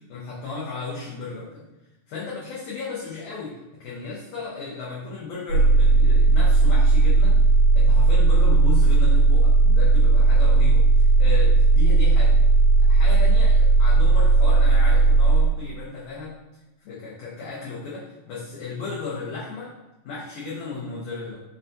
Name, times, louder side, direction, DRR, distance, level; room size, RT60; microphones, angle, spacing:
voice 1, 0.1-1.6 2.1-3.5 3.8-7.4 7.7-12.4 12.8-16.3 16.8-19.7 20.0-21.4, left 4 dB, 80° left, -7 dB, 1.6 m, -34 dB
sound 1, 5.5-15.5, right 3 dB, 85° right, 1.8 m, -16 dB
5.3 x 2.2 x 2.6 m, 1.0 s
omnidirectional pair, 4.0 m